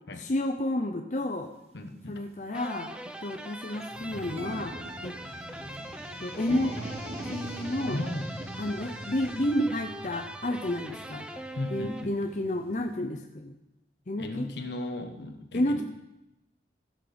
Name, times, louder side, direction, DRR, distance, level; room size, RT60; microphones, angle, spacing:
voice 1, 0.2-1.5 2.1-4.8 5.0-5.2 6.2-6.8 7.3-8.0 8.6-11.3 11.7-13.6 14.1-14.5 15.5-15.8, left 1 dB, 45° left, 4 dB, 0.7 m, -31 dB
sound 1, 1.4-1.5 2.3-2.5 2.9-3.0 3.3-13.0, right 1 dB, 35° right, 1.1 m, -43 dB
voice 2, 1.7-2.2 7.9-8.3 11.6-12.1 14.2-15.8, left 1 dB, 75° left, 5 dB, 1.3 m, -35 dB
sound 2, 2.5-12.5, right 1 dB, 5° right, 0.6 m, -42 dB
sound 3, 3.9-9.4, equal, 15° left, 3.0 m, -47 dB
16.0 x 6.3 x 5.2 m, 0.91 s
head